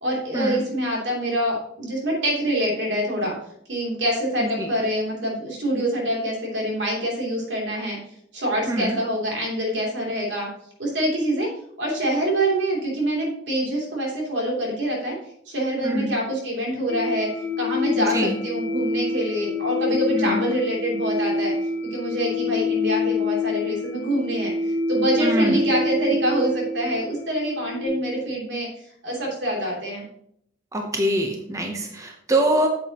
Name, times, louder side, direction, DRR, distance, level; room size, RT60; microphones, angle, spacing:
voice 1, 0.0-3.3 3.7-8.0 8.3-10.5 10.8-11.5 11.8-15.2 15.4-17.3 17.6-21.5 21.9-30.0, right 1 dB, 80° right, -2 dB, 3.1 m, -25 dB
voice 2, 8.7-9.0 15.8-16.1 18.0-18.4 20.2-20.4 25.2-25.6 30.7-32.7, right 1 dB, 15° right, 2 dB, 0.8 m, -24 dB
sound 1, 16.9-27.9, left 3 dB, 55° right, 3.7 m, -26 dB
8.8 x 7.5 x 3.0 m, 0.71 s
head